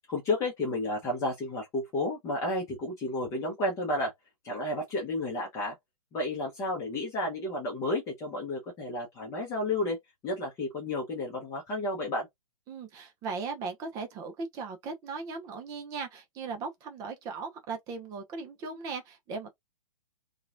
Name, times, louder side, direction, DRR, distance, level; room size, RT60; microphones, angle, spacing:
voice 1, 0.1-4.1 4.4-5.7 6.1-10.0 10.2-12.3, left 2 dB, 15° left, 0.8 m, -31 dB
voice 2, 12.7-19.5, right 4 dB, 20° right, 0.6 m, -38 dB
2.9 x 2.3 x 2.5 m
figure-of-eight pair, 120°, 19 cm